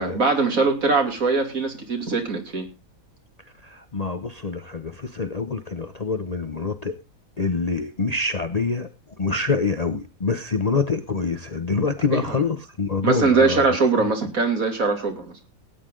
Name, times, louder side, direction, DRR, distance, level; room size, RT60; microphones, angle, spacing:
voice 1, 0.0-2.7 12.1-12.4 13.0-15.3, right 4 dB, 75° right, 3.1 m, -21 dB
voice 2, 3.6-7.0 7.4-8.9 9.2-13.6 14.0-14.1, left 4 dB, 35° left, 0.8 m, -26 dB
17.5 x 9.6 x 3.8 m
omnidirectional pair, 1.5 m